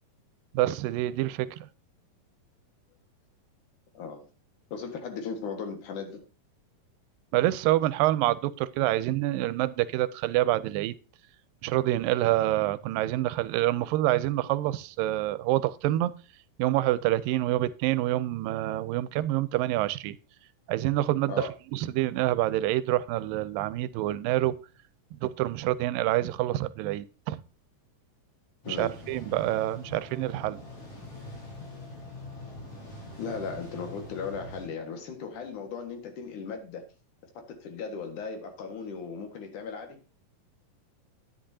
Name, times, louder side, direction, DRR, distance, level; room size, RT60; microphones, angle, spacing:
voice 1, 0.5-1.5 7.3-11.0 11.6-16.1 16.6-20.2 20.7-24.6 25.2-27.4 28.7-30.6, right 15 dB, 85° right, 2.3 m, -27 dB
voice 2, 4.7-6.2 21.3-21.5 28.7-29.0 33.2-36.8 37.3-40.0, left 5 dB, 65° left, 3.1 m, -37 dB
sound 1, 28.6-34.7, left 2 dB, 45° left, 4.8 m, -44 dB
10.5 x 10.0 x 2.8 m
omnidirectional pair, 4.0 m